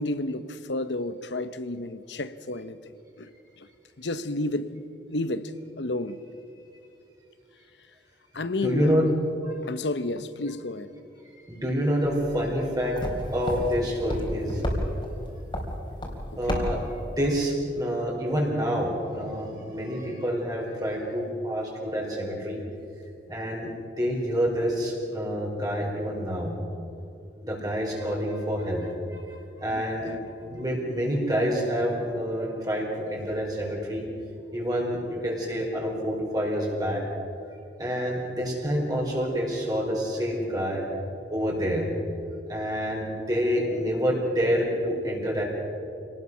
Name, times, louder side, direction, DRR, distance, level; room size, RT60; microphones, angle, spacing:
voice 1, 0.0-2.8 3.2-3.3 3.6-3.7 4.0-4.8 5.1-5.5 5.8-6.2 8.3-9.1 9.6-11.0 16.5-16.6 29.7-30.3, left 2 dB, 85° left, 1.0 m, -31 dB
voice 2, 8.6-9.1 9.4-9.5 11.3-13.0 13.3-14.6 16.4-22.6 23.3-23.7 24.0-26.5 27.4-30.1 30.5-34.1 34.5-37.0 37.8-40.8 41.3-41.8 42.5-45.4, equal, 20° right, 4.3 m, -27 dB
sound 1, 12.0-17.2, equal, 30° left, 3.8 m, -33 dB
27.0 x 19.0 x 6.3 m
head